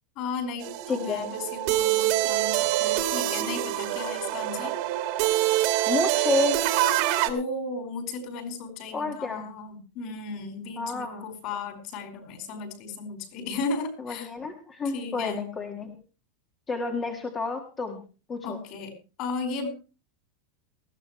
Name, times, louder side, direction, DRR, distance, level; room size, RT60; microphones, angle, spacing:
voice 1, 0.2-4.7 7.2-14.3 14.9-15.4 18.4-18.9 19.2-19.7, left 4 dB, 40° left, 8 dB, 4.6 m, -35 dB
sound 1, 0.6-7.3, right 14 dB, 45° right, 2.0 m, -25 dB
voice 2, 0.9-1.3 5.9-6.6 8.9-9.5 10.8-11.2 14.0-15.9 16.7-18.0 18.3-18.6, left 4 dB, 15° left, 4 dB, 1.6 m, -30 dB
19.5 x 15.0 x 3.1 m, 0.34 s
supercardioid pair, 170°, 0 cm